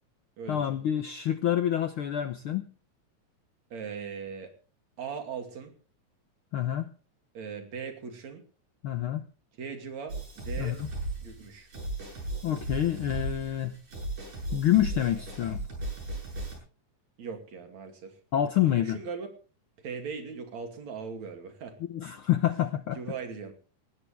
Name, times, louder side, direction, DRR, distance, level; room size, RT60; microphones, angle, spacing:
voice 1, 0.5-2.7 6.5-6.9 8.8-9.2 10.6-10.9 12.4-13.8 14.5-15.6 18.3-19.0 21.9-23.0, left 11 dB, 70° left, 1.3 m, -27 dB
voice 2, 3.7-4.5 5.0-5.7 7.3-8.4 9.6-10.8 11.2-11.7 17.2-18.2 18.7-19.3 19.8-21.8 23.0-23.5, right 6 dB, 65° right, 3.9 m, -39 dB
sound 1, 10.1-16.6, right 2 dB, 90° right, 9.5 m, -36 dB
19.5 x 16.0 x 3.4 m
omnidirectional pair, 3.4 m